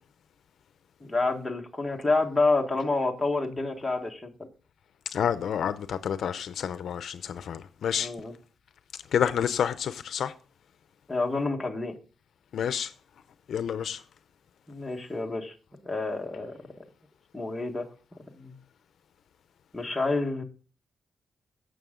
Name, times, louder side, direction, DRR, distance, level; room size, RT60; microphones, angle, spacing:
voice 1, 1.0-4.5 8.0-8.3 11.1-11.9 14.7-15.5 15.8-16.6 17.3-17.9 18.4-18.5 19.7-20.4, left 3 dB, 10° left, 1.4 m, -28 dB
voice 2, 5.1-8.1 9.1-10.3 12.5-12.9 13.5-14.0, left 8 dB, 70° left, 0.5 m, -29 dB
16.0 x 6.3 x 3.7 m
wide cardioid pair, 165°, 0 cm